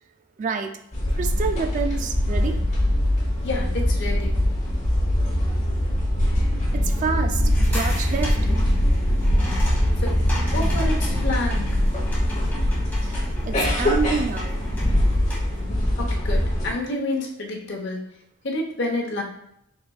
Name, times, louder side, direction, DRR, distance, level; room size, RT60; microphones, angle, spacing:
voice 1, 0.4-0.7 1.2-2.6 6.7-8.5 13.4-14.5, right 5 dB, 40° right, 6 dB, 0.3 m, -28 dB
sound 1, 0.9-16.7, left 1 dB, 35° left, 1.0 m, -22 dB
voice 2, 3.4-4.4 10.0-10.1 10.5-11.8 16.0-18.0 18.4-19.2, left 2 dB, 60° left, 0 dB, 0.8 m, -29 dB
sound 2, 7.4-15.6, left 1 dB, 10° left, 1.4 m, -38 dB
4.2 x 3.9 x 2.3 m, 0.78 s
head